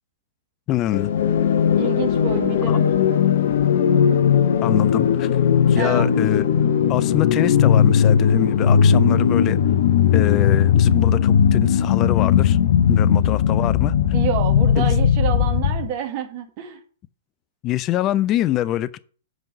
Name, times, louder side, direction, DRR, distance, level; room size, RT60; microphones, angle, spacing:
voice 1, 0.7-1.1 2.7-2.8 4.6-5.3 5.7-6.4 6.9-9.6 10.1-12.6 12.9-13.9 14.8-14.9 17.6-19.0, left 13 dB, 30° left, 0.4 m, -24 dB
sound 1, 0.9-15.9, left 8 dB, 60° left, 0.7 m, -18 dB
voice 2, 1.8-2.8 5.8-6.1 12.9-13.3 14.1-16.8, right 8 dB, 45° right, 1.6 m, -28 dB
8.0 x 5.3 x 5.6 m
figure-of-eight pair, 110°, 0 cm